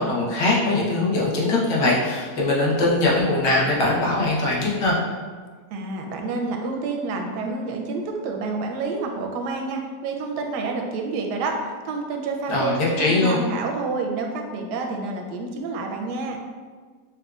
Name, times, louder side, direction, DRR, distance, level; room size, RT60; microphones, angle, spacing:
voice 1, 0.0-5.0 12.5-13.4, left 2 dB, 75° left, -5 dB, 1.5 m, -21 dB
voice 2, 5.7-16.4, right 3 dB, 90° right, 2 dB, 1.2 m, -28 dB
6.1 x 2.4 x 2.3 m, 1.5 s
omnidirectional pair, 1.7 m